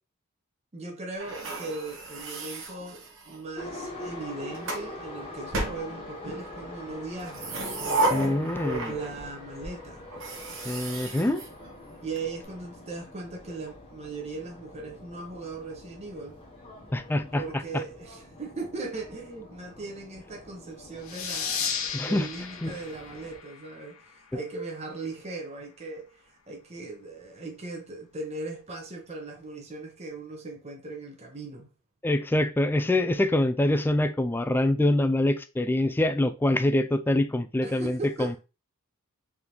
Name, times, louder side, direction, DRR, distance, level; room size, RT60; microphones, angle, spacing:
voice 1, 0.7-7.6 8.6-10.0 12.0-16.4 17.3-31.7 37.6-38.4, right 3 dB, 30° right, 0.9 m, -38 dB
sound 1, 1.2-3.5 4.2-4.9 5.5-6.4 7.2-9.3 9.6-9.7 10.1-12.2, right 2 dB, 60° right, 1.0 m, -33 dB
Subway metro underground, 3.6-23.4, left 2 dB, 25° left, 1.0 m, -44 dB
voice 2, 8.1-8.9 10.6-11.4 16.9-17.8 21.9-22.3 22.6-22.7 32.0-38.4, left 1 dB, 10° left, 0.3 m, -25 dB
sound 2, 21.0-24.3, left 6 dB, 65° left, 1.0 m, -34 dB
3.7 x 3.5 x 3.0 m
head